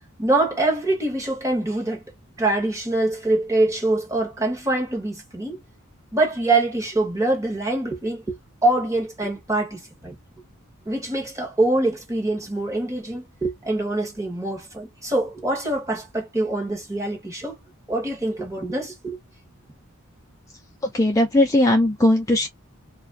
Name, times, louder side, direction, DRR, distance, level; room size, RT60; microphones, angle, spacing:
voice 1, 0.2-2.0 2.4-5.6 6.1-10.2 10.9-17.5 17.9-19.2, right 2 dB, 15° right, 0.9 m, -24 dB
voice 2, 20.9-22.5, left 1 dB, 15° left, 0.4 m, -18 dB
2.4 x 2.3 x 2.3 m
head